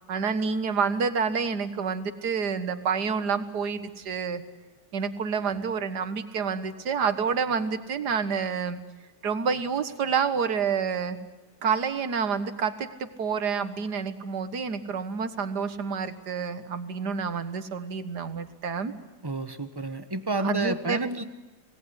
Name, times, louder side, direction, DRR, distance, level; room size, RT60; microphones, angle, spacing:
voice 1, 0.1-4.4 4.9-8.8 9.2-11.2 11.6-18.9 20.4-21.2, right 6 dB, 85° right, 11 dB, 2.1 m, -28 dB
voice 2, 19.2-21.2, right 2 dB, 15° right, 10 dB, 1.2 m, -30 dB
26.0 x 19.0 x 9.8 m, 1.2 s
omnidirectional pair, 1.7 m